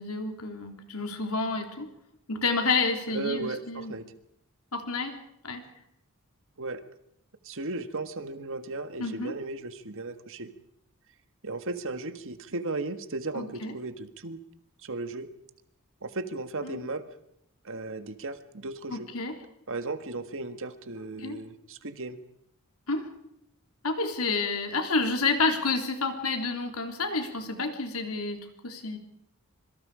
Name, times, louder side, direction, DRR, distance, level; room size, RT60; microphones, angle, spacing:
voice 1, 0.0-1.9 2.3-3.9 4.7-5.1 5.4-5.6 9.0-9.3 13.3-13.7 16.6-16.8 18.9-19.4 21.2-21.4 22.9-23.1 23.8-29.0, left 3 dB, 70° left, 5 dB, 3.6 m, -29 dB
voice 2, 3.1-4.1 6.6-6.8 7.4-10.5 11.4-14.4 14.8-15.3 16.0-17.0 17.6-19.1 19.7-22.2, right 3 dB, 65° right, 10 dB, 1.7 m, -35 dB
25.5 x 24.0 x 5.1 m, 0.77 s
head